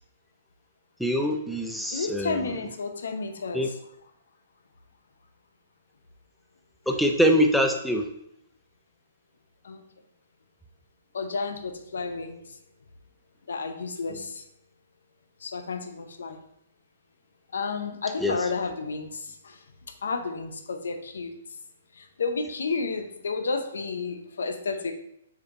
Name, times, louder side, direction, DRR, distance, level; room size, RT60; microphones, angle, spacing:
voice 1, 1.0-2.5 3.5-3.7 6.9-8.1 18.2-18.4, equal, ahead, 2 dB, 0.3 m, -24 dB
voice 2, 1.9-3.8 9.6-9.8 11.1-12.4 13.5-14.4 15.4-16.4 17.5-19.6 20.0-21.3 22.0-24.9, left 4 dB, 90° left, 7 dB, 0.6 m, -31 dB
6.8 x 2.6 x 2.6 m, 0.75 s
hypercardioid pair, 155°, 0 cm